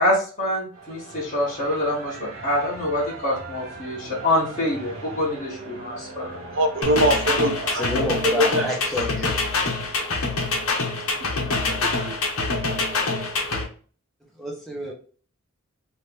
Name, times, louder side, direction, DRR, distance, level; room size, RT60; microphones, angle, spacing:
voice 1, 0.0-6.6, left 1 dB, 35° left, -8 dB, 1.2 m, -25 dB
sound 1, 0.7-8.1, right 3 dB, 75° right, 1.0 m, -39 dB
voice 2, 6.5-7.9 8.2-8.8 11.3-12.2, right 1 dB, 60° right, 6 dB, 0.6 m, -23 dB
sound 2, 6.8-13.6, left 3 dB, 80° left, 1.0 m, -25 dB
voice 3, 7.7-9.4 14.4-14.9, left 1 dB, ahead, -3 dB, 1.1 m, -29 dB
3.0 x 3.0 x 3.4 m, 0.41 s
head